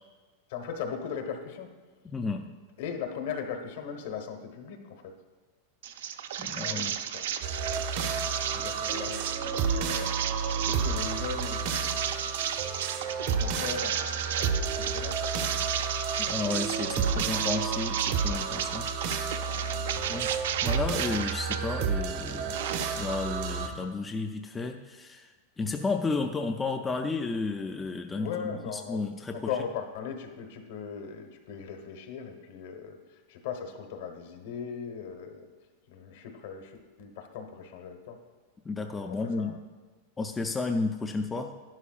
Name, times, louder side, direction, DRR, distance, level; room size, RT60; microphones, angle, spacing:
voice 1, 0.5-1.7 2.8-5.2 6.5-7.2 8.5-10.2 10.6-12.0 13.3-15.3 19.5-20.2 28.2-29.0 29.3-35.5 35.9-38.2 39.1-39.6, left 7 dB, 60° left, 4 dB, 1.1 m, -39 dB
voice 2, 2.0-2.5 6.4-6.9 16.2-18.9 20.1-20.3 20.6-28.3 28.7-29.4 38.6-39.6 40.2-41.5, left 3 dB, 10° left, 4 dB, 0.3 m, -32 dB
sound 1, 5.8-21.6 22.0-23.3, right 9 dB, 80° right, 0.5 m, -34 dB
sound 2, 7.4-23.7, right 5 dB, 50° right, 0.8 m, -31 dB
11.0 x 10.5 x 2.4 m, 1.4 s
supercardioid pair, 165°, 0 cm